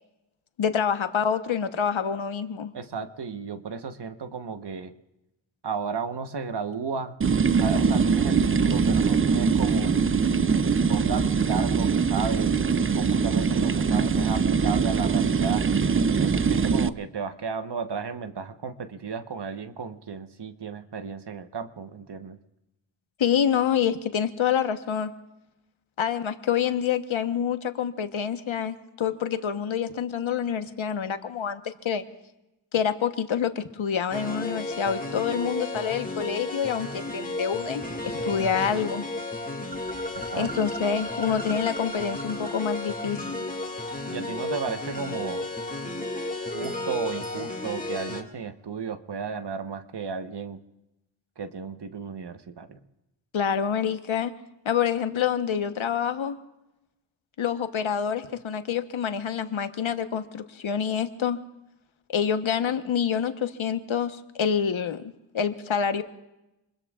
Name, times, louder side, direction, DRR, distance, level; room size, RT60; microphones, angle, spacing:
voice 1, 0.6-2.7 23.2-25.1 26.0-32.0 32.7-39.0 40.4-43.5 53.3-54.3 54.6-56.4 57.4-61.4 62.1-65.0 65.3-66.0, left 7 dB, 75° left, 8 dB, 1.2 m, -27 dB
voice 2, 2.7-4.9 5.6-7.2 7.5-10.0 10.8-12.5 12.9-15.7 16.1-22.4 40.1-40.5 44.1-45.5 46.5-50.6 51.4-52.8, right 5 dB, 55° right, 9 dB, 1.2 m, -34 dB
sound 1, 7.2-16.9, right 5 dB, 25° right, 0.5 m, -22 dB
sound 2, 34.1-48.2, left 2 dB, 15° left, 2.0 m, -33 dB
27.5 x 21.0 x 2.4 m, 0.94 s
cardioid pair, 65°, 48 cm